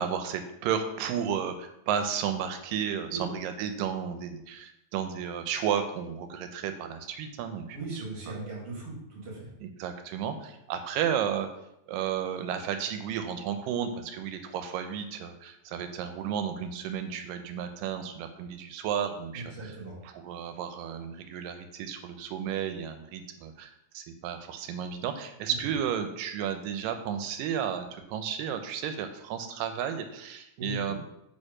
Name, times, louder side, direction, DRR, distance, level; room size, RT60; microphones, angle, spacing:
voice 1, 0.0-8.0 9.6-11.5 11.9-19.8 20.0-31.0, right 8 dB, 85° right, 7 dB, 2.2 m, -33 dB
voice 2, 7.7-9.5 19.3-20.0 30.6-30.8, right 2 dB, 50° right, -3 dB, 2.4 m, -38 dB
5.0 x 4.4 x 4.8 m, 0.81 s
omnidirectional pair, 3.9 m